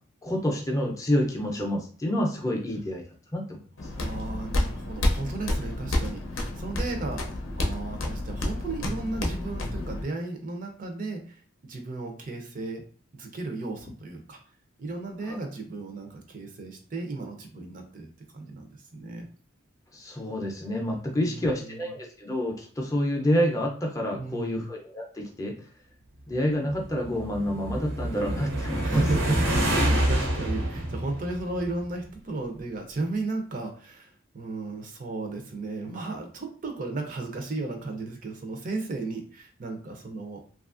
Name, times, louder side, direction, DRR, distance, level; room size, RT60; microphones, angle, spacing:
voice 1, 0.2-3.0 3.3-3.6 15.3-15.4 19.9-25.5 26.3-29.0, equal, 15° left, 0 dB, 0.5 m, -28 dB
sound 1, 3.8-10.0, left 1 dB, 85° left, 0.6 m, -30 dB
voice 2, 3.9-7.3 7.6-12.9 13.1-14.4 14.8-19.3 21.1-21.9 24.2-24.7 28.8-40.5, right 3 dB, 45° right, 4 dB, 0.5 m, -34 dB
sound 2, 26.5-32.0, right 1 dB, 80° right, 0.8 m, -27 dB
2.9 x 2.3 x 2.4 m, 0.42 s
head